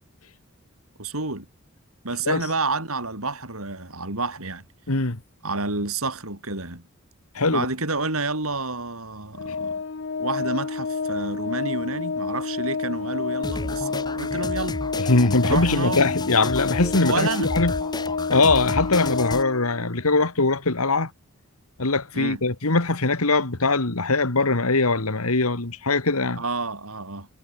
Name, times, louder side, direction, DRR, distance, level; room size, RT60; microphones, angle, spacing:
voice 1, 1.0-1.5 2.0-4.7 5.4-6.8 7.5-9.8 10.2-14.8 15.5-16.1 17.0-17.5 22.1-22.4 26.4-27.3, right 3 dB, 75° right, 5.6 m, -29 dB
voice 2, 4.9-5.2 7.3-7.7 15.0-17.7 18.3-21.1 21.8-26.4, left 3 dB, 85° left, 2.2 m, -21 dB
Organ, 9.3-20.1, left 4 dB, 55° left, 0.6 m, -29 dB
sound 1, 13.4-19.4, left 2 dB, 20° left, 1.5 m, -32 dB
head